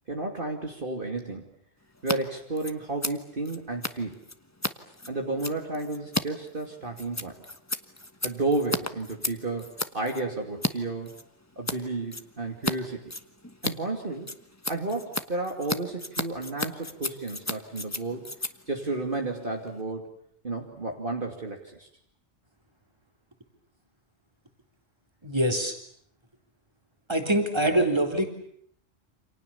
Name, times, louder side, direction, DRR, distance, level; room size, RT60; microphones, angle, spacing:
voice 1, 0.1-1.5 2.0-4.2 5.1-7.4 8.2-11.1 11.6-13.0 13.6-14.3 14.7-18.2 18.7-20.1 20.4-21.9, right 2 dB, 45° right, 1 dB, 2.9 m, -32 dB
Scissors, 1.9-2.2 2.4-10.7 11.0-11.8 12.1-12.7 13.0-19.8, left 2 dB, 15° left, 1.3 m, -34 dB
voice 2, 25.2-25.8 27.1-28.3, right 1 dB, 20° right, 3 dB, 3.7 m, -24 dB
29.0 x 27.0 x 7.1 m, 0.66 s
omnidirectional pair, 1.2 m